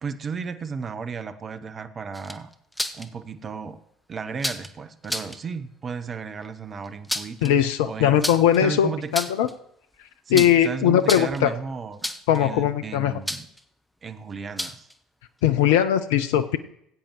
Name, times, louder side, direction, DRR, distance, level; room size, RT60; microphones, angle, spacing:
voice 1, 0.0-2.5 2.9-3.8 4.1-8.2 8.6-9.1 10.3-12.1 12.4-13.5 14.0-14.9, right 5 dB, 35° right, 10 dB, 0.8 m, -34 dB
sound 1, 2.1-3.1 4.4-4.7 5.0-5.4 6.8-7.5 8.2-8.6 9.0-9.5 10.3-10.7 11.0-11.5 12.0-12.4 13.3-13.6 14.6-14.9, left 1 dB, 5° left, 0.7 m, -30 dB
voice 2, 7.4-9.5 10.3-11.5 12.3-13.1 15.4-16.6, left 10 dB, 65° left, 10 dB, 0.4 m, -20 dB
18.5 x 8.7 x 3.1 m, 0.75 s
figure-of-eight pair, 60°, 0 cm